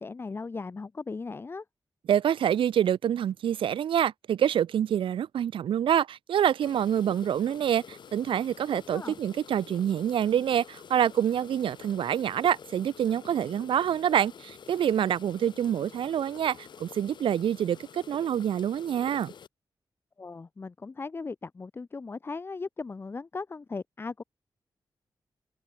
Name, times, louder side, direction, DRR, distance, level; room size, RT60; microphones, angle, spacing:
voice 1, 0.0-1.6 8.7-9.2 20.2-24.2, left 4 dB, 25° left, 0.7 m, -38 dB
voice 2, 2.1-19.3, right 9 dB, 75° right, 0.5 m, -26 dB
sound 1, 6.6-19.5, left 7 dB, 60° left, 1.4 m, -48 dB
open air
wide cardioid pair, 150°, 9 cm